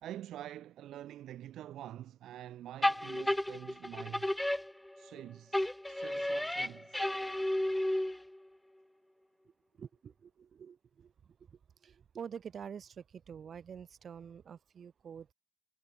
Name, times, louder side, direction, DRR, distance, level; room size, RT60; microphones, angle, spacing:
voice 1, 0.0-4.3 5.0-7.1, right 12 dB, 75° right, 0.6 m, -47 dB
sound 1, 2.8-5.2 5.5-8.4, left 1 dB, 5° left, 0.4 m, -33 dB
voice 2, 9.8-11.1 11.5-15.3, right 7 dB, 50° right, 1.7 m, -47 dB
cardioid pair, 95°, 0 cm